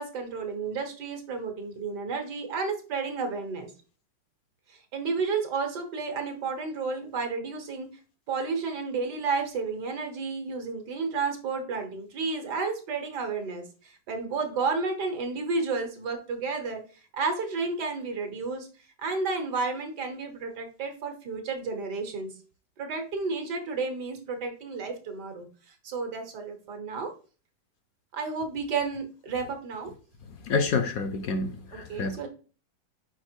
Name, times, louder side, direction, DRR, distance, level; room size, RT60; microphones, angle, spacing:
voice 1, 0.0-3.7 4.7-7.9 8.3-16.8 17.1-18.7 19.0-22.3 22.8-25.5 25.8-27.1 28.1-29.9 31.7-32.3, right 4 dB, 70° right, 1.8 m, -31 dB
voice 2, 30.4-32.3, left 4 dB, 65° left, 1.0 m, -28 dB
5.0 x 4.5 x 4.4 m
omnidirectional pair, 1.9 m